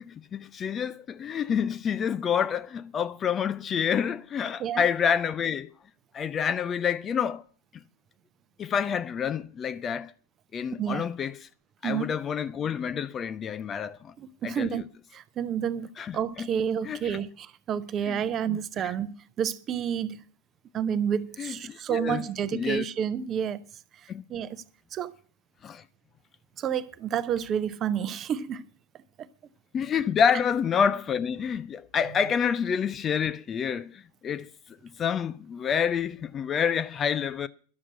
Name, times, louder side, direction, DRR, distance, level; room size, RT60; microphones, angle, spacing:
voice 1, 0.0-5.7 6.1-7.4 8.6-10.1 10.5-11.5 11.8-14.1 14.4-14.8 16.0-16.5 16.8-17.2 18.1-18.6 18.8-18.9 21.4-22.2 22.5-22.9 24.1-24.2 25.6-25.8 29.7-34.5 35.0-37.5, left 7 dB, 25° left, 0.4 m, -28 dB
voice 2, 11.8-12.2 14.2-14.8 15.1-20.2 20.7-23.6 24.3-24.6 24.9-25.1 26.6-28.7, right 8 dB, 30° right, 0.7 m, -30 dB
11.5 x 7.3 x 7.9 m
figure-of-eight pair, 90°, 0 cm